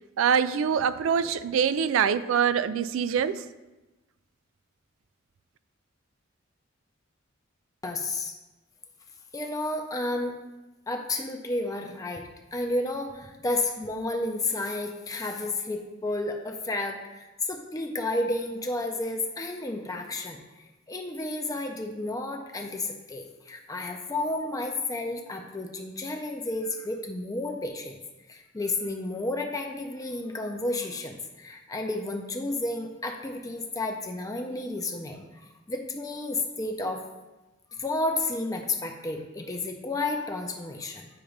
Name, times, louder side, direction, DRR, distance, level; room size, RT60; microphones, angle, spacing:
voice 1, 0.2-3.4, right 7 dB, 80° right, 15 dB, 0.3 m, -24 dB
voice 2, 7.8-8.4 9.3-10.3 10.9-20.4 20.9-28.0 28.3-35.2 35.7-37.0 37.8-41.1, left 2 dB, 20° left, 3 dB, 0.5 m, -31 dB
8.6 x 2.9 x 5.0 m, 1.1 s
head